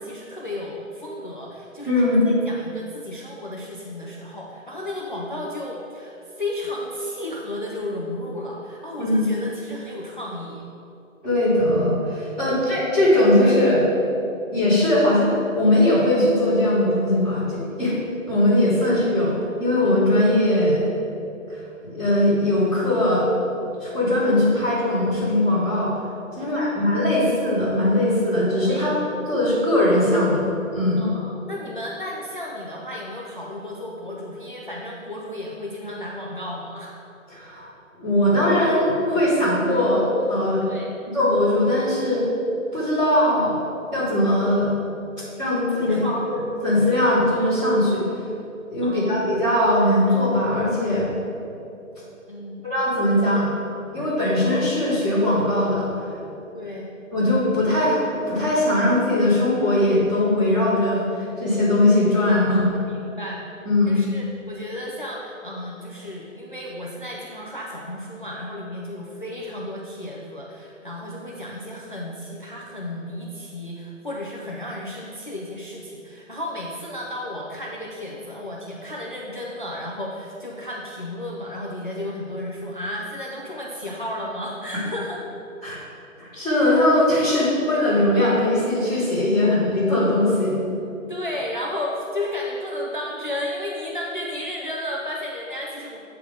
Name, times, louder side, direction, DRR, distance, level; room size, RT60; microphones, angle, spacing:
voice 1, 0.0-10.6 12.4-12.7 18.7-18.9 26.4-26.9 28.7-28.9 31.0-36.9 40.6-41.0 45.8-46.2 48.8-49.3 52.3-52.6 56.5-56.9 62.4-63.4 63.9-85.2 91.1-96.0, left 1 dB, 40° left, -3 dB, 0.5 m, -33 dB
voice 2, 1.8-2.3 9.0-9.2 11.2-13.8 14.5-17.9 18.3-20.8 21.5-23.3 23.8-25.9 26.3-29.0 29.3-30.4 30.7-31.1 37.3-37.6 38.0-40.6 41.1-42.2 42.7-43.6 43.9-44.7 45.4-46.0 46.6-48.0 48.7-51.1 52.6-53.5 53.9-55.9 57.1-62.6 63.6-64.0 85.6-85.8 86.2-90.5, left 1 dB, 5° right, -19 dB, 1.0 m, -20 dB
7.8 x 3.5 x 4.9 m, 2.8 s
hypercardioid pair, 175°, 40 cm